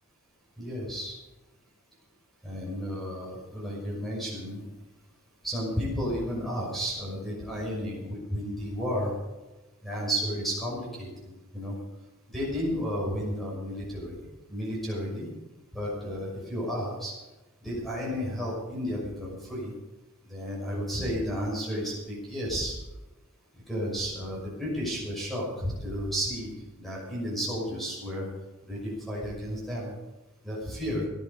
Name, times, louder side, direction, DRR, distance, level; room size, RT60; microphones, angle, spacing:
voice 1, 0.6-1.1 2.4-4.6 5.4-9.1 9.8-11.8 12.3-14.2 14.5-15.3 15.7-17.1 17.6-19.7 20.3-22.8 23.7-26.5 26.8-28.3 28.7-29.9 30.4-31.0, equal, ahead, -5 dB, 6.0 m, -32 dB
18.0 x 11.5 x 5.3 m, 1.1 s
head